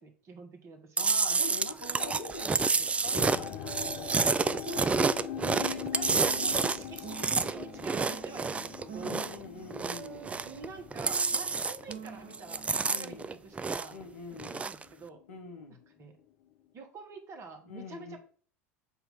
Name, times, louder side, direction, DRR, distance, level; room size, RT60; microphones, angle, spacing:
voice 1, 0.0-1.1 5.5-9.4 10.4-12.7 12.9-13.9 14.5-15.2 16.0-16.1 16.7-18.2, right 4 dB, 40° right, 1.7 m, -47 dB
voice 2, 1.0-4.7 9.0-10.5 12.8-13.3 13.9-14.6 15.3-15.8 17.6-18.2, left 4 dB, 80° left, 1.5 m, -44 dB
Chewing mastication, 1.0-9.4 9.7-10.7 10.9-12.1 12.3-14.0 14.4-14.8, right 4 dB, 15° right, 0.4 m, -29 dB
sound 1, 1.8-12.7, right 5 dB, 65° right, 1.1 m, -47 dB
sound 2, 3.2-14.3 14.6-15.2 15.8-15.9, left 11 dB, 55° left, 0.6 m, -43 dB
7.9 x 3.0 x 5.7 m
figure-of-eight pair, 75°, 8 cm